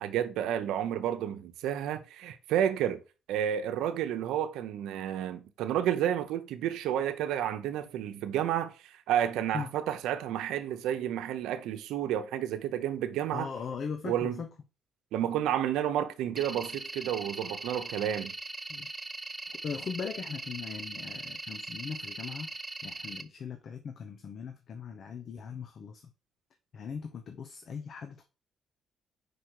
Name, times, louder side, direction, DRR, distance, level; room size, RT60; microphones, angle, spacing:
voice 1, 0.0-3.0 3.3-13.5 14.0-14.4 15.1-18.3, right 10 dB, 90° right, 0.7 m, -31 dB
voice 2, 13.3-14.5 18.7-18.9 19.6-22.5 22.8-26.0 26.7-28.2, left 6 dB, 60° left, 0.8 m, -39 dB
sound 1, 16.4-23.2, right 2 dB, 15° right, 0.6 m, -40 dB
5.1 x 4.7 x 4.6 m
cardioid pair, 90°, 0 cm